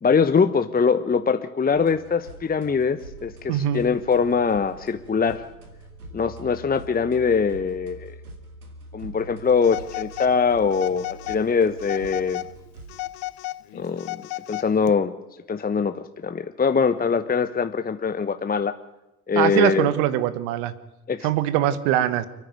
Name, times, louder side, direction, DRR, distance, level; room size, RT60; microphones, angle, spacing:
voice 1, 0.0-5.4 6.1-8.2 8.9-12.4 13.7-14.2 14.5-15.1 15.5-18.7 19.3-19.9 21.1-21.3, left 5 dB, 20° left, 9 dB, 1.2 m, -22 dB
sound 1, 1.7-13.1, right 2 dB, 85° right, 3.1 m, -44 dB
voice 2, 3.5-3.8 19.4-20.7 21.2-22.3, right 12 dB, 65° right, 15 dB, 1.7 m, -22 dB
Telephone, 9.6-10.3 10.7-11.4 11.8-12.5 12.9-14.9, left 19 dB, 55° left, 0.9 m, -34 dB
29.0 x 10.0 x 9.6 m, 1.0 s
figure-of-eight pair, 60°, 43 cm